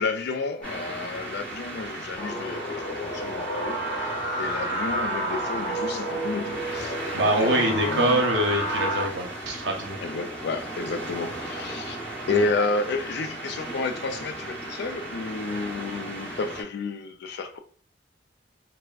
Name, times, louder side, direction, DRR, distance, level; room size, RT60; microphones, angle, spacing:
voice 1, 0.0-8.3 10.0-12.0 12.3-17.6, left 3 dB, 60° left, 0.3 m, -31 dB
sound 1, 0.6-16.6, right 1 dB, 5° left, 0.8 m, -37 dB
sound 2, 2.2-9.0, right 1 dB, 30° left, 1.0 m, -30 dB
voice 2, 7.2-10.0 12.3-12.5, right 1 dB, 65° right, 0.8 m, -24 dB
3.4 x 2.1 x 2.3 m
head